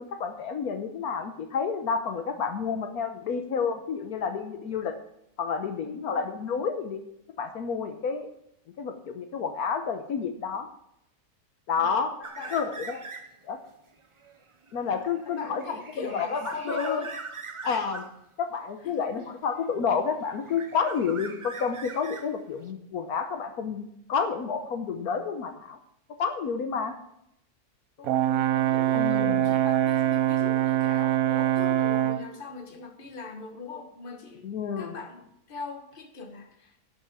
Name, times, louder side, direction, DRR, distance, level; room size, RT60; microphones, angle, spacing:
voice 1, 0.0-4.9 5.4-7.0 7.4-8.3 8.8-10.7 11.7-12.1 12.5-13.1 13.4-13.6 14.7-17.0 17.6-18.0 18.4-25.8 26.2-26.9 28.9-29.5 34.4-34.9, left 6 dB, 75° left, 6 dB, 1.4 m, -30 dB
voice 2, 5.8-6.2 11.8-12.7 15.2-17.1 18.8-19.3 28.0-34.5 34.8-36.8, left 4 dB, 35° left, 4 dB, 1.5 m, -41 dB
sound 1, 12.2-13.5 13.9-18.2 19.2-20.0 20.3-22.7, right 4 dB, 35° right, 0.5 m, -42 dB
Brass instrument, 28.0-32.3, right 12 dB, 70° right, 1.0 m, -24 dB
11.5 x 6.0 x 7.1 m, 0.76 s
omnidirectional pair, 1.6 m